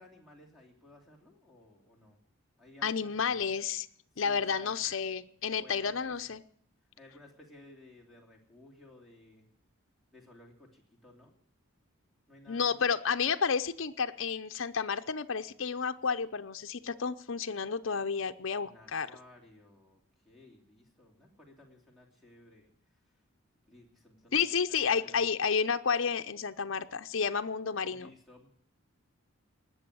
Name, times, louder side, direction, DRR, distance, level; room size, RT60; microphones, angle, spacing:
voice 1, 0.0-2.2 2.6-3.4 4.1-4.8 5.6-6.1 7.0-9.5 10.1-11.3 12.3-12.9 18.6-20.0 20.2-22.7 23.7-24.5 24.8-25.2 27.8-28.5, left 2 dB, ahead, 0 dB, 3.0 m, -56 dB
voice 2, 2.8-3.9 4.2-6.4 12.5-19.1 24.3-28.1, left 6 dB, 65° left, 9 dB, 0.7 m, -31 dB
19.0 x 7.0 x 9.8 m, 0.63 s
head